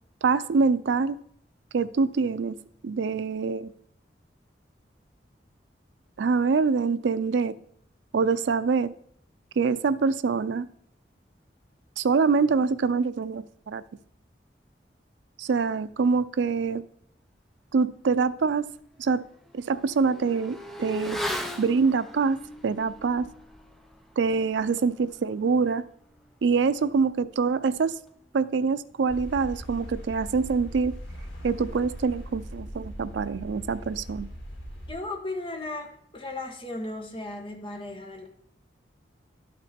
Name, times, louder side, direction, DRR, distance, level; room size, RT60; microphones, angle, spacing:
voice 1, 0.2-1.2 1.7-2.6 2.8-3.7 6.2-7.5 8.1-8.9 9.6-10.7 12.0-13.8 15.4-16.8 17.7-18.7 19.0-19.2 19.5-21.2 21.6-23.3 24.2-25.8 26.4-28.0 28.3-30.9 31.4-34.3, right 5 dB, 85° right, 15 dB, 0.4 m, -25 dB
Motorcycle / Accelerating revving vroom, 18.6-28.6 28.8-28.9, equal, ahead, 0.6 m, -40 dB
sound 1, 29.1-34.9, equal, 80° left, 2.2 m, -40 dB
voice 2, 34.9-38.3, left 2 dB, 30° left, 3 dB, 1.2 m, -36 dB
12.0 x 5.9 x 4.3 m, 0.71 s
head